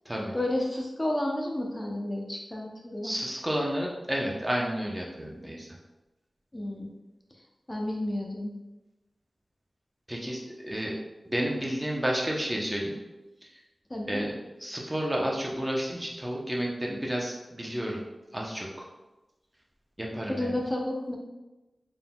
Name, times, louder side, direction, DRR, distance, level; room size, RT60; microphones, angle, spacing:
voice 1, 0.3-3.1 6.5-6.9 7.7-8.5 13.9-14.3 20.4-21.2, left 1 dB, 25° left, -1 dB, 0.7 m, -31 dB
voice 2, 3.0-5.7 10.1-10.9 11.2-13.0 14.1-18.0 18.3-18.9 20.0-20.5, equal, 20° right, -2 dB, 0.9 m, -31 dB
3.9 x 3.8 x 2.3 m, 1.1 s
cardioid pair, 45°, 0 cm